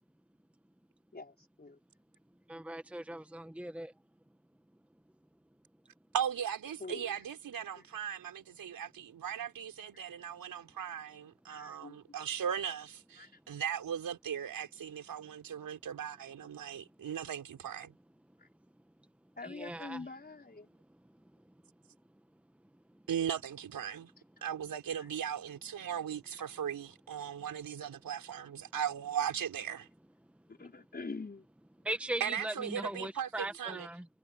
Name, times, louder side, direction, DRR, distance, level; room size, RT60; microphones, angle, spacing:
voice 1, 1.1-1.8 6.8-7.3 7.8-7.9 9.9-10.0 11.5-12.0 13.2-13.4 18.4-18.5 19.4-20.7 24.4-24.5 24.9-25.1 26.3-26.4 30.5-31.5, left 3 dB, 30° left, 5.3 m, -45 dB
voice 2, 2.5-3.9 19.5-20.0 31.8-34.0, right 1 dB, 5° right, 1.2 m, -39 dB
voice 3, 6.1-17.9 23.1-24.1 24.4-29.9 32.2-33.9, right 8 dB, 80° right, 5.2 m, -38 dB
cardioid pair, 75°, 34 cm